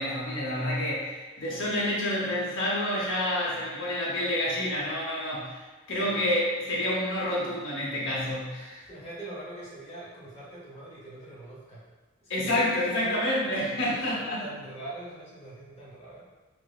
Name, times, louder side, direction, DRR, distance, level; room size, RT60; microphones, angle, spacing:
voice 1, 0.0-8.8 12.3-14.4, left 1 dB, 65° left, -5 dB, 0.8 m, -28 dB
voice 2, 8.9-11.8 12.2-13.2 13.9-16.2, right 1 dB, 30° left, -7 dB, 0.7 m, -43 dB
4.9 x 2.0 x 2.3 m, 1.3 s
head